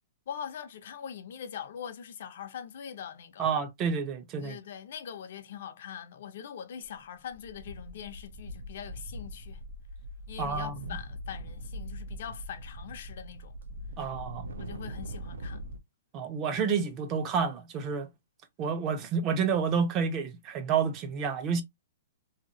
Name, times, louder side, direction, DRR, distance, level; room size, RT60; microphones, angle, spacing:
voice 1, 0.3-3.5 4.4-9.6 10.3-13.5 14.6-15.6, left 8 dB, 60° left, 0.6 m, -42 dB
voice 2, 3.4-4.6 10.4-11.0 14.0-14.5 16.1-18.1 18.6-21.6, right 6 dB, 25° right, 0.6 m, -29 dB
sound 1, 6.8-7.0 7.3-15.8, equal, 85° right, 0.7 m, -41 dB
2.8 x 2.5 x 2.7 m
hypercardioid pair, 150°, 0 cm